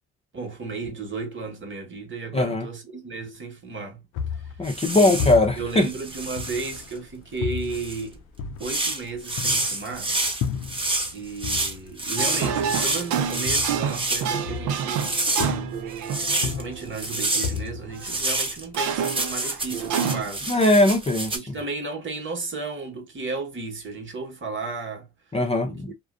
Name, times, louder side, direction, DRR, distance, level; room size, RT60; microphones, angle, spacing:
voice 1, 0.3-4.0 4.4-4.5 4.9-5.3 5.6-8.2 8.6-10.2 11.1-15.5 16.4-20.6 21.1-25.1 25.6-25.9, right 4 dB, 40° right, 1.1 m, -34 dB
voice 2, 2.3-2.7 4.6-5.9 20.5-21.3 25.3-25.9, left 2 dB, 20° left, 0.6 m, -20 dB
sound 1, 4.1-7.0 7.4-11.1 11.4-15.1 15.4-16.0 16.3-18.6, left 7 dB, 90° left, 0.5 m, -33 dB
sound 2, 4.6-5.4 5.8-6.9 7.7-8.0 8.6-14.3 14.8-16.6 16.9-17.6 18.0-21.4, right 2 dB, 15° right, 1.0 m, -28 dB
sound 3, 12.2-17.5 18.0-18.1 18.7-20.2, right 7 dB, 80° right, 0.5 m, -28 dB
2.4 x 2.2 x 2.4 m
cardioid pair, 90°, 30 cm